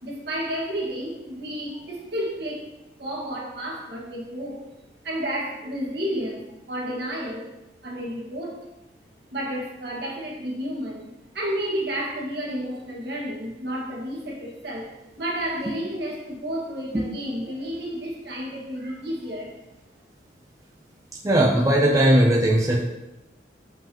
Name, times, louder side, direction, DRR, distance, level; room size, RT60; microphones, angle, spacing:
voice 1, 0.0-2.7 3.0-4.7 5.0-7.5 7.8-8.6 9.3-14.9 15.2-19.6, equal, 65° right, -3 dB, 1.7 m, -31 dB
voice 2, 21.2-22.8, right 1 dB, 20° right, -1 dB, 0.5 m, -18 dB
7.2 x 5.3 x 2.9 m, 0.94 s
head